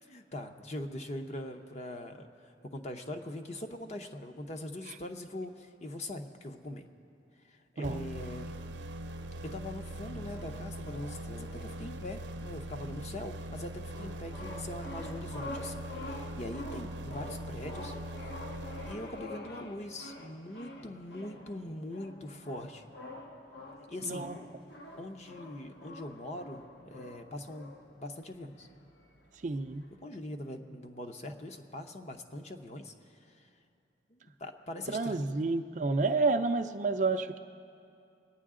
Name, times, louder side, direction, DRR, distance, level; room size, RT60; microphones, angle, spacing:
voice 1, 0.1-6.9 7.4-8.5 9.4-18.3 18.8-22.9 23.9-24.3 25.0-28.7 30.0-33.5 34.1-35.4, left 1 dB, 40° left, 6 dB, 0.7 m, -42 dB
sound 1, 7.8-19.5, right 1 dB, 80° right, 0.7 m, -41 dB
sound 2, 10.1-30.0, left 1 dB, 75° left, 1.2 m, -47 dB
voice 2, 24.0-24.4 29.4-29.8 34.9-37.4, right 3 dB, 40° right, 8 dB, 0.4 m, -30 dB
22.5 x 9.5 x 3.7 m, 2.7 s
head